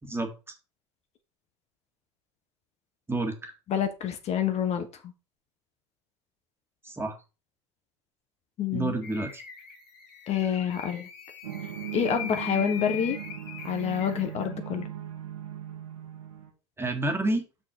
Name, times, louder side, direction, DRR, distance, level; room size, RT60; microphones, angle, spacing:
voice 1, 0.0-0.6 3.1-3.5 6.8-7.2 8.7-9.4 16.8-17.4, right 2 dB, 15° right, 5 dB, 1.9 m, -29 dB
voice 2, 3.7-5.1 8.6-8.9 10.3-11.1 11.9-13.2 13.6-14.9, left 8 dB, 40° left, 7 dB, 1.3 m, -28 dB
sound 1, 9.0-14.5, left 8 dB, 60° left, 2.9 m, -41 dB
sound 2, 11.4-16.5, right 12 dB, 85° right, 1.8 m, -38 dB
6.3 x 6.2 x 4.6 m, 0.30 s
hypercardioid pair, 80°, 16 cm